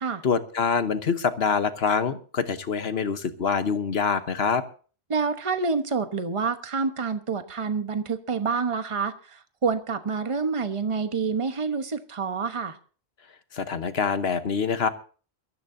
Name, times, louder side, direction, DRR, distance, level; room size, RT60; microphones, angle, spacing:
voice 1, 0.2-4.6 13.5-14.9, left 6 dB, 65° left, 10 dB, 1.3 m, -25 dB
voice 2, 5.1-12.8, right 5 dB, 30° right, 9 dB, 1.0 m, -27 dB
22.5 x 14.0 x 2.7 m, 0.39 s
omnidirectional pair, 1.1 m